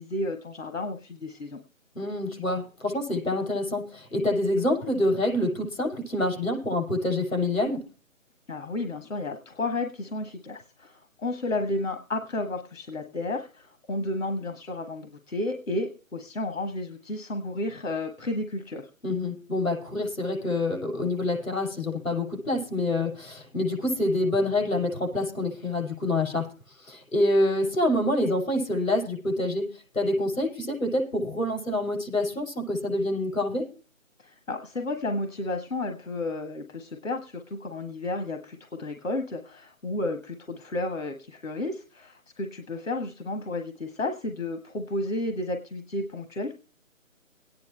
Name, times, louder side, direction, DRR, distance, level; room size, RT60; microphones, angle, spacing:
voice 1, 0.0-1.6 8.5-18.9 34.2-46.5, left 2 dB, 70° left, 6 dB, 1.4 m, -32 dB
voice 2, 2.0-7.8 19.0-26.5 26.8-33.7, left 1 dB, 90° left, 2 dB, 7.0 m, -27 dB
22.0 x 9.6 x 3.2 m, 0.35 s
figure-of-eight pair, 175°, 40 cm